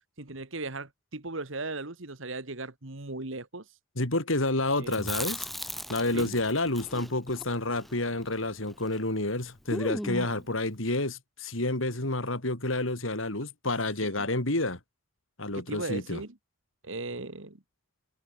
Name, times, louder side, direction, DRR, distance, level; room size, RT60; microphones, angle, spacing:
voice 1, 0.2-3.7 4.8-5.1 6.1-6.4 10.1-10.4 14.0-14.3 15.5-16.4 16.8-17.6, right 2 dB, 75° right, 2.2 m, -37 dB
voice 2, 4.0-5.5 5.9-14.8 15.4-16.2, left 2 dB, 80° left, 4.4 m, -29 dB
Chewing mastication, 4.8-9.0 9.3-9.4 9.7-10.4, equal, ahead, 2.4 m, -38 dB
head